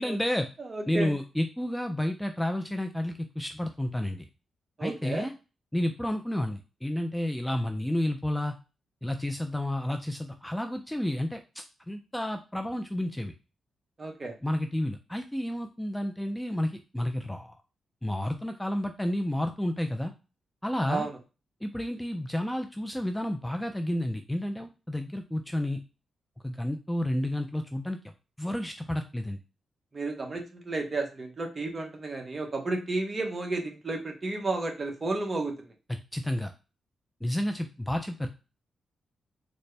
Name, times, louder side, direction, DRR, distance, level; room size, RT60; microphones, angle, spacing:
voice 1, 0.0-0.5 0.9-4.3 4.8-5.3 5.7-8.5 9.0-13.3 14.4-17.6 18.0-20.1 20.6-21.1 21.6-25.8 26.4-28.0 28.4-29.4 36.1-36.5 37.2-38.3, left 1 dB, 5° left, 6 dB, 0.3 m, -31 dB
voice 2, 0.6-1.2 4.8-5.3 14.0-14.3 20.9-21.1 29.9-35.7, right 2 dB, 30° right, 3 dB, 0.9 m, -32 dB
4.1 x 2.0 x 3.2 m, 0.31 s
cardioid pair, 110°, 0 cm